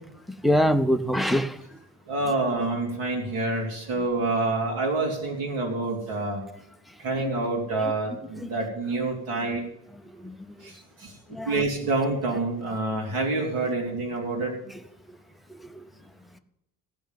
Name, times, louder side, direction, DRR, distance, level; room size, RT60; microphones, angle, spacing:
voice 1, 0.4-1.6 7.2-7.3 8.4-8.5 9.4-9.5 10.2-10.4 11.3-11.6 15.6-15.8, equal, ahead, 0.4 m, -24 dB
voice 2, 2.1-6.4 7.0-9.7 10.6-10.7 11.0-11.1 11.5-14.5, right 2 dB, 80° right, 3.4 m, -27 dB
15.5 x 5.5 x 9.1 m
cardioid pair, 165°, 35 cm